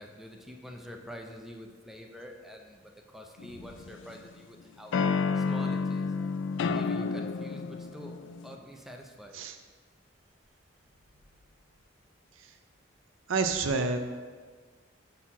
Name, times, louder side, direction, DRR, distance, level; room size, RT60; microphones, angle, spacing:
voice 1, 0.0-5.0 5.3-6.1 6.7-8.2 8.4-9.4, equal, ahead, 2 dB, 0.5 m, -46 dB
sound 1, 3.4-4.3 4.9-8.6, left 5 dB, 65° left, 0.3 m, -30 dB
voice 2, 13.3-14.0, right 4 dB, 90° right, 7 dB, 0.6 m, -28 dB
5.7 x 4.2 x 5.9 m, 1.5 s
head